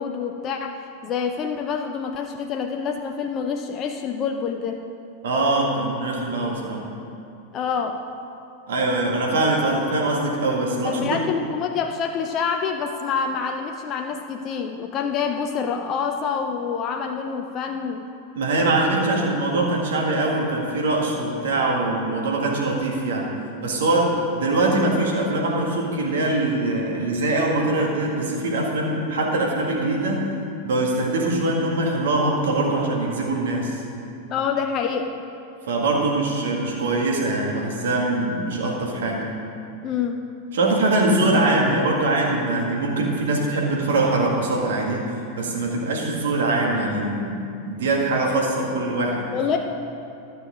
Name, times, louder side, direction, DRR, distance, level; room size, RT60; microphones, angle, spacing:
voice 1, 0.0-4.8 7.5-8.0 10.8-18.0 34.3-35.1 39.8-40.2 49.3-49.6, left 6 dB, 30° left, 4 dB, 0.6 m, -27 dB
voice 2, 5.2-6.9 8.7-11.2 18.4-23.3 23.6-30.3 30.6-33.8 35.7-39.3 40.5-45.0 45.4-49.3, right 2 dB, 60° right, -1 dB, 1.8 m, -23 dB
13.0 x 6.5 x 5.1 m, 2.5 s
figure-of-eight pair, 90°, 0 cm